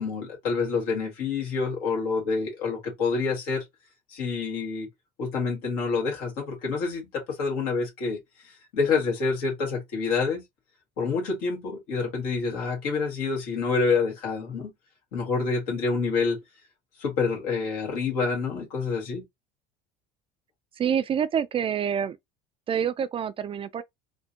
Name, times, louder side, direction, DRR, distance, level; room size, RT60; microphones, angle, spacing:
voice 1, 0.0-3.6 4.1-4.9 5.2-8.2 8.7-10.4 11.0-14.7 15.1-16.4 17.0-19.2, left 4 dB, 85° left, 1.8 m, -27 dB
voice 2, 20.8-22.2 22.7-23.8, right 8 dB, 30° right, 0.3 m, -27 dB
4.3 x 2.1 x 2.8 m
supercardioid pair, 105°, 19 cm